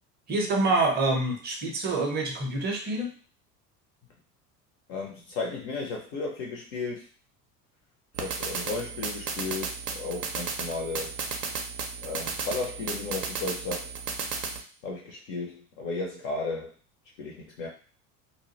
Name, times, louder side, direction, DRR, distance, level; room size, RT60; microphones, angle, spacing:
voice 1, 0.3-3.1, right 2 dB, 20° right, 1 dB, 0.5 m, -26 dB
voice 2, 4.9-7.1 8.2-11.1 12.0-13.9 14.8-16.7 17.2-17.7, left 3 dB, 30° left, 0 dB, 0.4 m, -34 dB
sound 1, 8.1-14.6, right 5 dB, 80° right, 0.6 m, -34 dB
2.3 x 2.0 x 2.7 m, 0.40 s
figure-of-eight pair, 70°, 48 cm